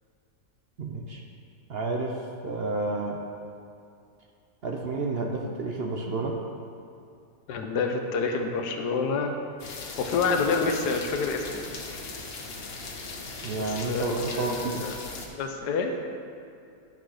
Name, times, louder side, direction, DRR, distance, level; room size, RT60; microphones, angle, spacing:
voice 1, 0.8-1.2 1.7-3.2 4.6-6.4 13.4-14.8, right 3 dB, 55° right, 1 dB, 0.7 m, -30 dB
voice 2, 7.5-9.3 10.0-11.7 13.6-15.0 15.3-16.0, left 4 dB, 90° left, 4 dB, 1.4 m, -28 dB
sound 1, 9.6-15.3, left 3 dB, 45° left, 1.0 m, -39 dB
10.5 x 6.0 x 4.9 m, 2.5 s
omnidirectional pair, 1.7 m